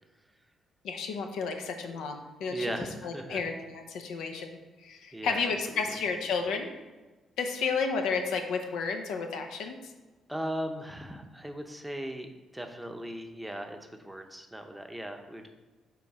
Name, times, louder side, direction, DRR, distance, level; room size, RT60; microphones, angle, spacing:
voice 1, 0.8-2.7 3.0-6.7 7.4-9.9, left 5 dB, 85° left, 5 dB, 0.7 m, -32 dB
voice 2, 2.5-3.4 5.1-5.8 10.3-15.5, right 1 dB, 5° right, 4 dB, 0.7 m, -38 dB
6.9 x 3.2 x 4.8 m, 1.2 s
cardioid pair, 90°, 0 cm